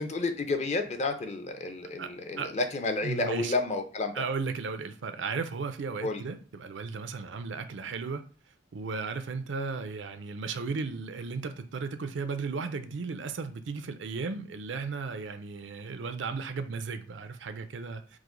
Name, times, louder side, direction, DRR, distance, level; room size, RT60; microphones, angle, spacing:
voice 1, 0.0-4.1 6.0-6.2, left 3 dB, 40° left, 0.5 m, -31 dB
voice 2, 3.0-3.5 4.1-8.2 8.7-18.2, right 4 dB, 80° right, 0.5 m, -35 dB
4.8 x 2.0 x 3.8 m
head